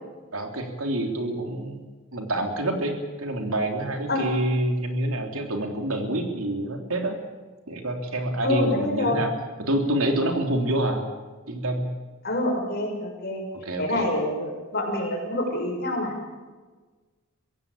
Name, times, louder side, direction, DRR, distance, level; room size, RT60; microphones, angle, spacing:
voice 1, 0.3-1.8 2.1-7.2 7.7-9.3 9.6-11.0 11.5-11.8 13.6-14.1, right 1 dB, 80° right, 4 dB, 3.3 m, -27 dB
voice 2, 8.4-9.2 12.2-13.4 13.8-16.1, left 1 dB, 45° left, 1 dB, 6.2 m, -26 dB
23.5 x 16.0 x 8.7 m, 1.3 s
head